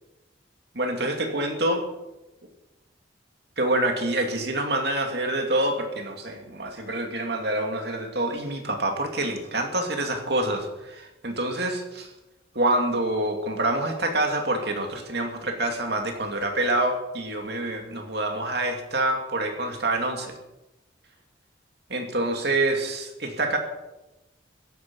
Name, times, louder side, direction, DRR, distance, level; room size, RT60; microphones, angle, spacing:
voice 1, 0.7-1.8 3.6-12.1 12.5-20.4 21.9-23.6, right 1 dB, 60° right, 3 dB, 2.6 m, -26 dB
17.0 x 13.5 x 5.6 m, 1.0 s
head